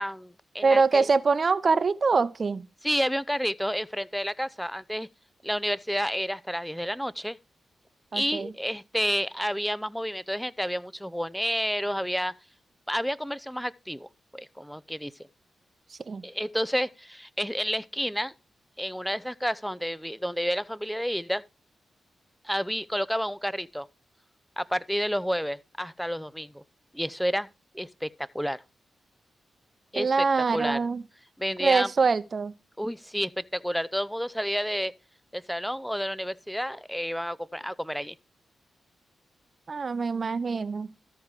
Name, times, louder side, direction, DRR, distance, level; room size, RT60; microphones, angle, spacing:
voice 1, 0.0-1.1 2.8-5.1 5.4-7.4 8.1-12.3 12.9-15.1 16.2-18.3 18.8-21.4 22.4-23.9 24.6-26.6 26.9-27.5 27.7-28.1 28.3-28.6 29.9-30.3 30.5-30.8 31.4-31.9 32.8-34.9 35.3-38.1, equal, ahead, 0.5 m, -30 dB
voice 2, 0.6-2.6 8.1-8.5 16.1-16.2 30.0-31.0 31.6-32.5 39.7-40.9, right 4 dB, 50° right, 0.7 m, -24 dB
13.5 x 4.7 x 4.8 m
supercardioid pair, 45°, 0 cm